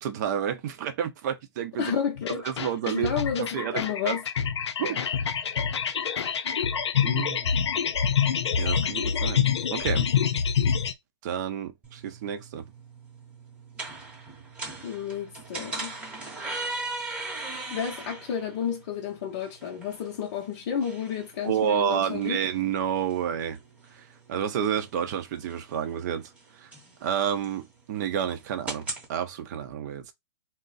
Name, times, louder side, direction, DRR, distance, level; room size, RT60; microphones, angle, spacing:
voice 1, 0.0-1.9 2.4-3.1 3.4-4.2 4.8-5.0 7.0-7.6 8.6-10.1 11.2-12.7 21.4-23.6 23.9-26.7 27.0-30.1, right 9 dB, 40° right, 0.6 m, -30 dB
voice 2, 1.8-2.5 2.8-4.2 14.8-16.0 17.7-22.4, left 8 dB, 40° left, 0.6 m, -31 dB
sound 1, 2.2-10.9, left 7 dB, 85° left, 0.5 m, -26 dB
sound 2, 11.8-29.1, right 2 dB, 10° right, 0.8 m, -40 dB
2.6 x 2.0 x 3.9 m
hypercardioid pair, 145°, 14 cm